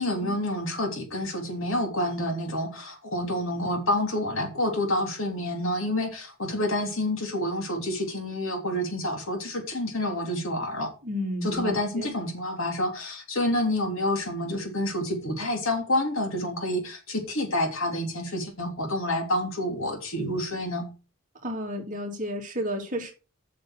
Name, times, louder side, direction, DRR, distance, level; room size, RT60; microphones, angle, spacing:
voice 1, 0.0-10.9 11.4-20.9, left 1 dB, 65° left, 3.2 m, -28 dB
voice 2, 11.0-12.1 21.4-23.1, equal, 40° right, 2.8 m, -32 dB
8.0 x 6.5 x 6.4 m
head